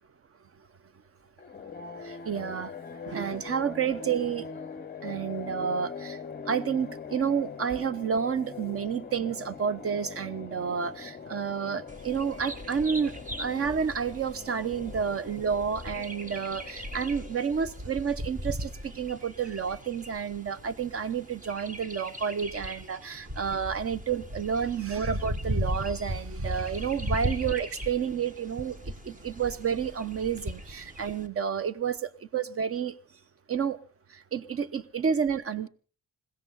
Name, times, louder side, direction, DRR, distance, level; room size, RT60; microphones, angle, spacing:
sound 1, 1.4-18.0, left 6 dB, 25° left, 0.7 m, -42 dB
voice 1, 2.0-2.7 3.1-4.6 5.0-33.0 33.5-33.8 34.1-35.7, right 7 dB, 40° right, 0.9 m, -30 dB
Bird vocalization bird call bird song, 11.9-31.3, equal, 20° right, 1.5 m, -38 dB
20.5 x 16.0 x 4.0 m
cardioid pair, 115°, 37 cm